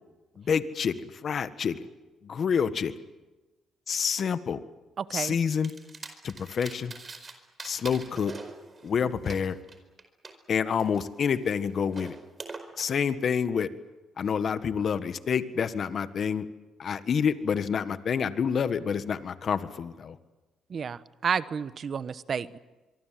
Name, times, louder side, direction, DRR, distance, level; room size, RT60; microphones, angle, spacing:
voice 1, 0.4-1.8 2.2-2.9 3.9-4.6 5.1-5.7 6.2-6.9 7.6-8.3 8.8-9.6 10.5-12.2 12.8-13.7 14.2-16.4 16.8-20.2, left 7 dB, 55° left, 12 dB, 1.5 m, -28 dB
voice 2, 5.0-5.4 20.7-22.6, right 6 dB, 50° right, 15 dB, 1.0 m, -31 dB
sound 1, 5.6-7.3 7.6-10.3 10.8-12.6, right 4 dB, 35° right, 4.7 m, -43 dB
25.0 x 24.0 x 7.7 m, 1.1 s
cardioid pair, 90°, 0 cm